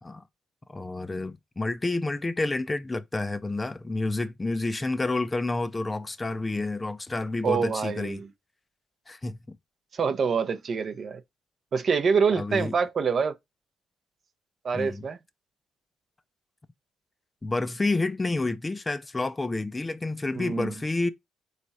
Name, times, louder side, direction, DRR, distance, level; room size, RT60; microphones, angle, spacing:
voice 1, 0.7-8.2 9.1-9.6 12.4-12.7 14.7-15.0 17.4-21.1, left 2 dB, 20° left, 0.4 m, -29 dB
voice 2, 7.4-8.3 9.9-11.2 11.7-13.4 14.6-15.2 20.3-20.7, right 5 dB, 50° right, 0.6 m, -26 dB
3.5 x 3.3 x 4.1 m
cardioid pair, 90°, 0 cm